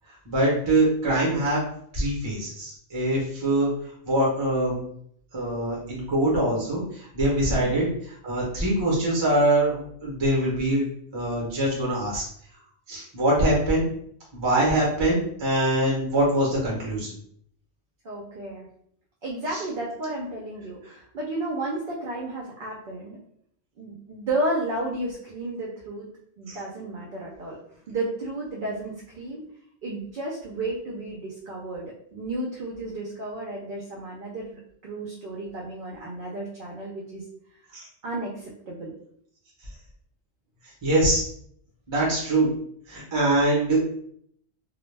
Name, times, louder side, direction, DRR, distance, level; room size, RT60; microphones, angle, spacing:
voice 1, 0.3-1.6 1.9-3.7 4.0-4.8 5.3-10.9 11.1-12.2 12.9-13.9 14.3-17.1 19.5-19.6 26.5-26.6 37.7-37.9 40.8-41.2 41.9-42.5 42.9-44.0, right 1 dB, 30° right, -4 dB, 0.7 m, -23 dB
voice 2, 7.5-7.8 18.0-18.7 19.2-23.2 23.8-26.0 26.4-27.6 27.9-29.4 29.8-37.2 38.0-38.9, right 2 dB, 60° right, -3 dB, 0.7 m, -32 dB
2.2 x 2.1 x 3.1 m, 0.67 s
omnidirectional pair, 1.1 m